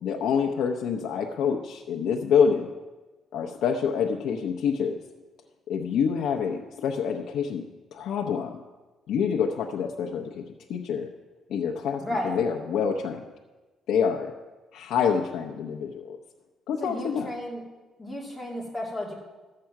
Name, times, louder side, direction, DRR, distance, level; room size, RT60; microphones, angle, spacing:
voice 1, 0.0-2.7 3.3-4.9 5.7-7.6 7.9-8.6 9.1-10.4 10.7-11.1 11.5-13.2 13.9-14.3 14.7-16.2 16.7-17.3, left 7 dB, 75° left, 1 dB, 0.8 m, -26 dB
voice 2, 12.0-12.3 16.8-17.6 18.0-19.2, left 1 dB, 5° left, -3 dB, 2.5 m, -33 dB
12.5 x 7.6 x 5.9 m, 1.2 s
cardioid pair, 150°, 0 cm